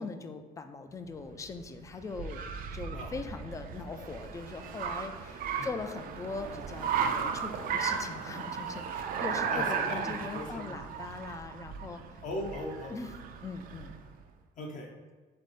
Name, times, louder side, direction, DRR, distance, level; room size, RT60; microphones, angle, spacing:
voice 1, 0.0-2.4 2.7-12.0 12.9-13.9, left 4 dB, 20° left, 8 dB, 0.3 m, -41 dB
Car, 1.1-14.1, right 6 dB, 60° right, 0.4 m, -35 dB
voice 2, 9.5-10.9 12.2-13.0 14.6-14.9, left 1 dB, 50° left, 1 dB, 0.9 m, -39 dB
3.6 x 3.4 x 4.1 m, 1.3 s
cardioid pair, 110°, 17 cm